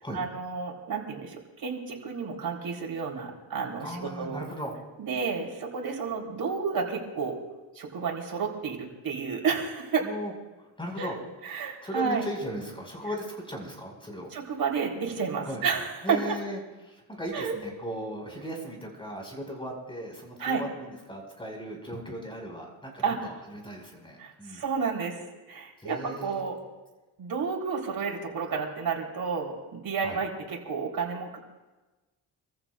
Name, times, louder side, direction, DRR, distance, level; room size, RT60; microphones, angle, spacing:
voice 1, 0.1-4.4 5.0-7.4 7.7-10.0 11.0-12.2 14.3-16.4 17.3-17.5 20.4-20.6 23.0-23.2 24.2-25.1 25.5-26.5 27.2-31.4, right 5 dB, 55° right, 0 dB, 4.2 m, -31 dB
voice 2, 3.8-4.7 10.0-10.3 10.6-11.2 11.8-14.3 15.5-15.6 16.0-24.6 25.8-26.4 30.0-30.2, equal, 10° left, 0 dB, 5.6 m, -37 dB
28.0 x 15.0 x 2.6 m, 1.1 s
cardioid pair, 95°, 43 cm